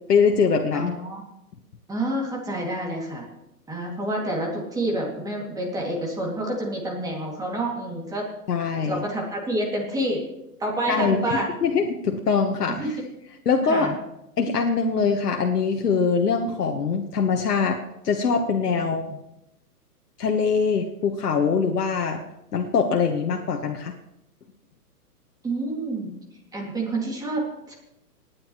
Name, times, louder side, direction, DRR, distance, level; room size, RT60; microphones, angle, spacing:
voice 1, 0.1-0.9 8.5-9.0 10.9-12.9 13.4-13.9 14.4-17.8 18.0-19.1 20.2-22.2 22.5-23.9, left 5 dB, 80° left, 2 dB, 1.4 m, -23 dB
voice 2, 0.7-1.2 1.9-3.3 3.7-8.3 8.8-10.2 10.6-11.5 12.8-12.9 13.7-13.9 18.7-18.9 25.4-26.1 26.5-27.7, right 1 dB, 10° right, -2 dB, 2.4 m, -28 dB
28.0 x 9.6 x 3.1 m, 0.88 s
hypercardioid pair, 145°, 47 cm